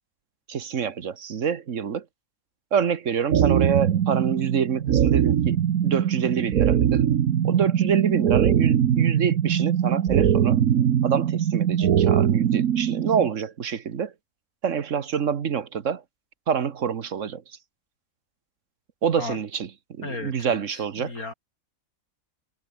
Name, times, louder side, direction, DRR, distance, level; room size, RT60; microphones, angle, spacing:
voice 1, 0.5-2.0 2.7-5.6 5.8-7.1 7.4-10.6 11.0-14.1 14.6-16.0 16.5-17.4 19.0-21.1, right 7 dB, 60° right, 1.5 m, -26 dB
sound 1, 3.3-13.3, right 9 dB, 80° right, 1.5 m, -21 dB
voice 2, 20.0-21.3, left 3 dB, 85° left, 4.6 m, -35 dB
omnidirectional pair, 1.5 m